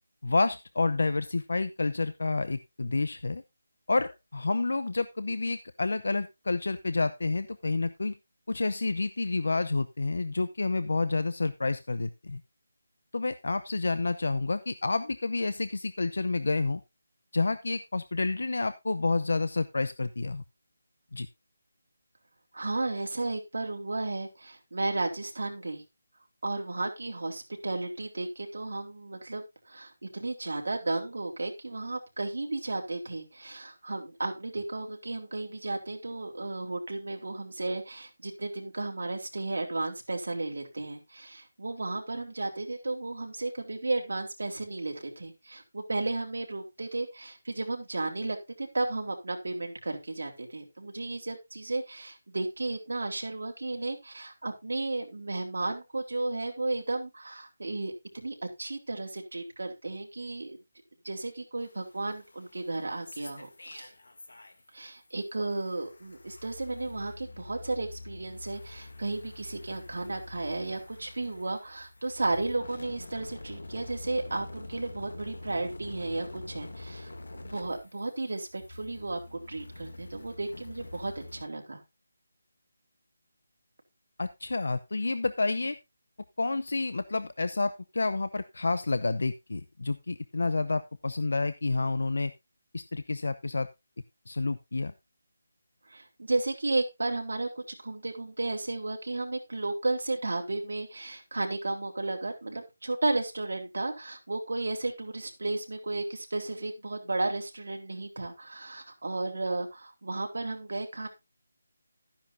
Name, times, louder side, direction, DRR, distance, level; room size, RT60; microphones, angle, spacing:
voice 1, 0.2-3.4 3.9-8.1 8.5-12.4 13.1-16.8 17.3-20.4 21.1-21.3 84.2-85.8 86.4-92.3 92.7-93.7 94.3-94.9, left 3 dB, 60° left, 13 dB, 0.7 m, -29 dB
voice 2, 22.5-25.8 26.4-60.6 61.0-63.9 64.7-81.8 95.9-111.1, right 2 dB, 70° right, 1 dB, 3.8 m, -34 dB
sound 1, 61.6-64.8 65.1-81.4, left 2 dB, 80° left, 2.5 m, -46 dB
13.5 x 10.0 x 2.7 m, 0.23 s
figure-of-eight pair, 180°, 0 cm